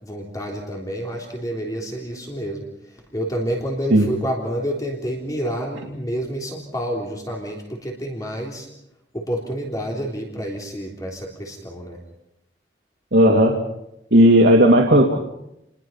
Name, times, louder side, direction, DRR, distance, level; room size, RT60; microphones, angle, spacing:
voice 1, 0.0-2.6 3.1-8.7 9.1-12.0, equal, 20° left, -1 dB, 3.5 m, -28 dB
voice 2, 13.1-13.5 14.1-15.2, equal, 75° right, 0 dB, 2.4 m, -13 dB
30.0 x 21.5 x 5.7 m, 0.84 s
head